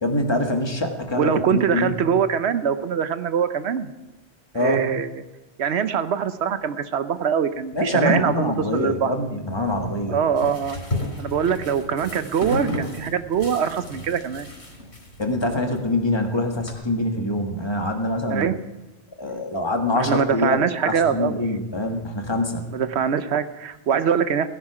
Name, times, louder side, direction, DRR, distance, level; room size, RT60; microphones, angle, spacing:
voice 1, 0.0-1.9 4.5-4.8 7.7-10.2 15.2-18.5 19.2-20.6 20.8-22.6, left 1 dB, 25° left, 3 dB, 1.7 m, -24 dB
voice 2, 1.1-3.9 4.5-5.2 5.6-9.1 10.1-10.8 11.2-14.5 18.3-18.6 19.9-21.4 22.7-24.5, right 7 dB, 75° right, 12 dB, 1.0 m, -23 dB
sound 1, 9.7-16.7, left 1 dB, 80° left, 4.3 m, -33 dB
17.0 x 10.5 x 4.9 m, 1.1 s
omnidirectional pair, 1.1 m